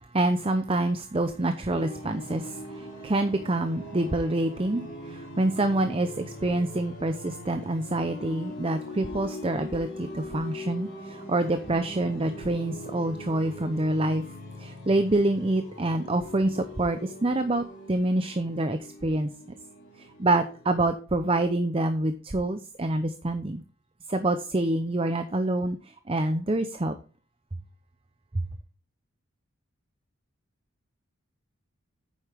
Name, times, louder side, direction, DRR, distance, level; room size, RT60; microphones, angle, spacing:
voice 1, 0.1-14.2 14.6-19.3 20.0-23.6 24.1-26.9, right 2 dB, 25° right, 8 dB, 0.6 m, -27 dB
sound 1, 1.7-20.8, left 1 dB, 60° left, 4.1 m, -42 dB
9.5 x 7.0 x 3.5 m, 0.38 s
head